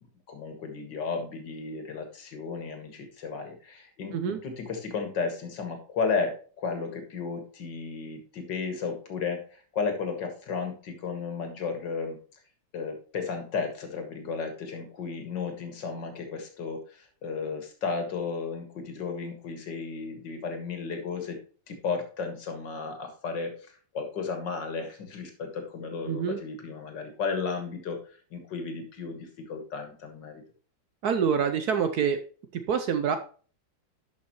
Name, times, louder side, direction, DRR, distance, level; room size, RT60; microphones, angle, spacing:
voice 1, 0.3-12.2 12.7-21.4 21.7-23.6 23.9-28.0 28.3-30.4, left 5 dB, 70° left, 5 dB, 2.4 m, -34 dB
voice 2, 26.1-26.4 31.0-32.2 32.5-33.2, right 7 dB, 65° right, 8 dB, 1.1 m, -26 dB
12.0 x 5.7 x 3.0 m, 0.40 s
omnidirectional pair, 2.1 m